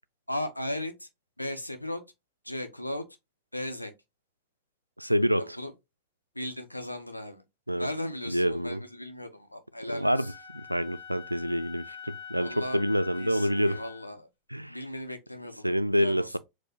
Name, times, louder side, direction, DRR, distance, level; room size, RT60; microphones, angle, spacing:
voice 1, 0.3-1.1 1.4-2.0 2.4-3.0 3.5-3.9 5.4-5.7 6.3-7.4 7.8-10.3 12.4-12.8 13.2-14.3 14.7-15.6 15.9-16.4, left 1 dB, 85° left, 0.8 m, -36 dB
voice 2, 5.0-5.6 7.7-7.9 8.3-8.8 9.9-13.8 14.5-14.8 15.6-16.4, equal, 90° right, 0.3 m, -27 dB
Wind instrument woodwind instrument, 10.0-14.1, left 7 dB, 60° left, 1.1 m, -44 dB
4.7 x 2.1 x 4.3 m
figure-of-eight pair, 90°, 0 cm